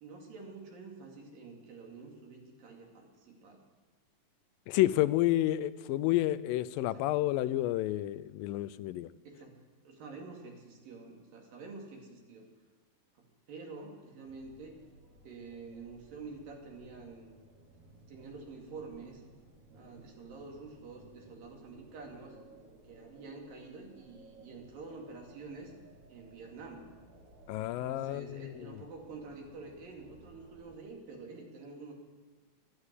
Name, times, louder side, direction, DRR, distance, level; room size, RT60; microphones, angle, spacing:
voice 1, 0.0-3.6 6.9-7.1 9.3-12.5 13.2-14.8 15.2-17.3 18.1-19.2 19.7-22.4 22.8-25.7 26.1-26.9 27.8-31.9, right 4 dB, 85° right, 1 dB, 4.1 m, -48 dB
voice 2, 4.7-9.1 27.5-28.8, left 15 dB, 90° left, 15 dB, 2.3 m, -30 dB
sound 1, 14.2-30.8, right 2 dB, 65° right, 2.6 m, -58 dB
12.0 x 11.5 x 8.2 m, 1.4 s
omnidirectional pair, 3.9 m